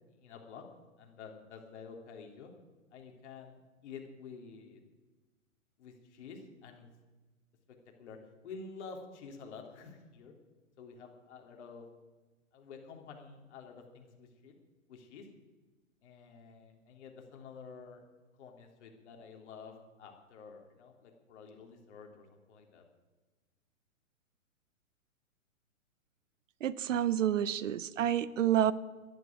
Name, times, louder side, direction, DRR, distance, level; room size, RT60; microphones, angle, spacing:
voice 1, 0.1-0.6 1.0-2.5 2.9-4.8 5.8-6.9 8.0-10.3 10.8-11.9 12.5-14.5 14.9-15.3 16.0-18.0 18.4-22.8, left 5 dB, 55° left, 2 dB, 3.5 m, -50 dB
voice 2, 26.6-28.7, right 10 dB, 65° right, 18 dB, 0.8 m, -29 dB
11.5 x 11.0 x 9.4 m, 1.3 s
hypercardioid pair, 130°, 42 cm